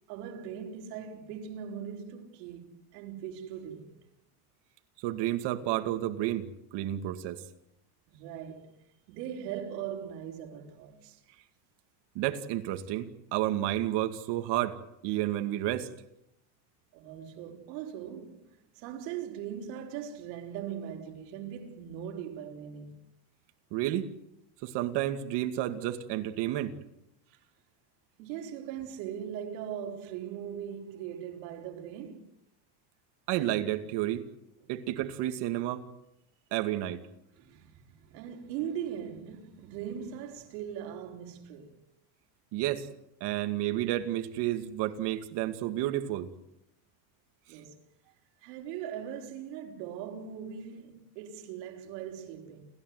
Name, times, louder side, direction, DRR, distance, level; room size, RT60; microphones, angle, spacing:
voice 1, 0.1-4.0 8.1-8.8 9.1-11.2 16.9-18.5 18.7-23.0 27.3-27.4 28.2-32.3 34.6-34.7 37.3-41.8 47.5-47.8 48.4-52.6, right 9 dB, 85° right, 4.4 m, -40 dB
voice 2, 5.0-6.5 6.7-7.4 12.1-14.8 15.0-15.9 23.7-24.1 24.6-26.8 33.3-34.2 34.7-35.8 36.5-37.0 42.5-42.9 43.2-46.3, right 13 dB, 55° right, 2.4 m, -31 dB
30.0 x 14.5 x 9.5 m
cardioid pair, 165°, 49 cm